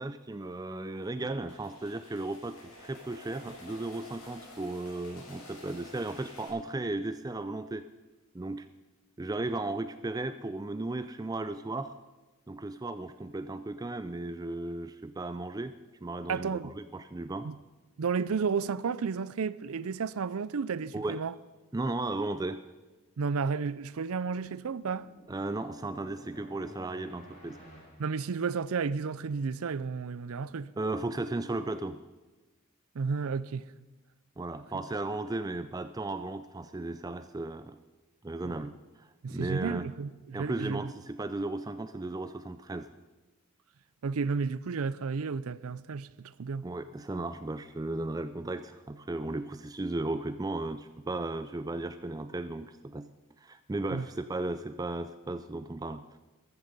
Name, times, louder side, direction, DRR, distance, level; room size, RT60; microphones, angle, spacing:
voice 1, 0.0-7.9 8.3-8.7 9.2-11.9 12.5-15.7 16.0-17.5 20.9-21.2 21.7-22.6 25.3-27.6 30.8-32.0 34.4-37.8 38.2-38.7 39.0-39.9 40.3-42.9 46.6-53.1 53.4-56.0, right 2 dB, 15° right, 0.3 m, -35 dB
sound 1, 0.9-6.5, left 1 dB, 85° left, 5.9 m, -50 dB
voice 2, 16.3-16.7 17.4-17.5 18.0-21.3 23.2-25.1 28.0-30.7 32.9-33.6 38.4-38.5 39.2-40.9 44.0-46.7 53.9-54.1, right 5 dB, 75° right, 0.5 m, -32 dB
sound 2, 24.1-29.0, equal, 30° left, 4.0 m, -53 dB
14.0 x 14.0 x 5.3 m
head